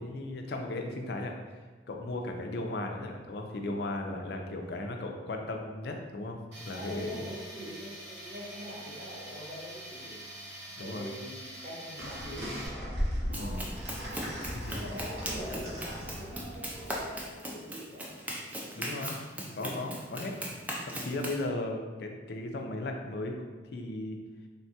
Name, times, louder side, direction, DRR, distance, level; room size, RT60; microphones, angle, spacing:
voice 1, 0.0-6.4 6.7-7.2 10.8-11.1 13.3-13.6 14.5-14.9 18.7-19.2 19.5-20.3 20.8-23.4 23.7-24.2, left 2 dB, 60° left, 3 dB, 0.4 m, -36 dB
Tools, 6.5-12.7, right 1 dB, 85° right, 1.1 m, -45 dB
voice 2, 6.7-10.2 10.8-12.9 13.3-13.7 14.7-18.1, equal, 45° right, -7 dB, 0.9 m, -44 dB
sound 1, 12.0-17.3, equal, 65° right, 1.0 m, -37 dB
Run, 13.3-21.4, equal, 10° right, 0.3 m, -39 dB
3.5 x 2.2 x 2.7 m, 1.3 s
head